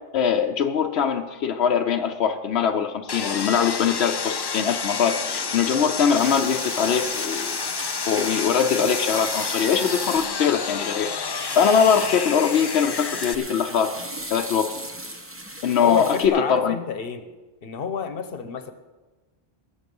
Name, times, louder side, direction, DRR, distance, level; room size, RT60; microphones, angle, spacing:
voice 1, 0.1-7.6 8.1-11.1 11.5-13.9 14.3-14.7 15.6-16.7, left 7 dB, 85° left, 5 dB, 1.0 m, -22 dB
Sawing, 3.1-13.3, left 5 dB, 40° left, 0.3 m, -30 dB
sound 1, 4.9-7.7 8.2-8.3, equal, 75° right, 3.5 m, -45 dB
sound 2, 6.2-16.3, right 1 dB, 15° right, 0.9 m, -36 dB
voice 2, 15.8-17.2 17.6-18.7, left 6 dB, 65° left, 9 dB, 1.2 m, -29 dB
20.0 x 7.2 x 5.4 m, 1.2 s
omnidirectional pair, 1.1 m